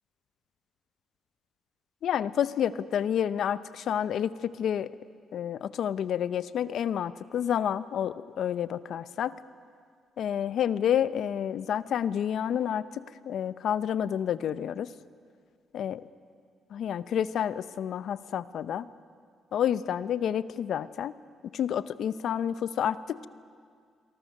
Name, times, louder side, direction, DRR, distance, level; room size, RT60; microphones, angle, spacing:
voice 1, 2.0-4.3 4.6-4.9 5.3-9.3 10.2-14.9 15.7-16.0 16.7-18.9 19.5-21.1 21.5-23.3, left 9 dB, 70° left, 15 dB, 0.7 m, -29 dB
27.0 x 23.5 x 6.6 m, 2.1 s
cardioid pair, 90°, 0 cm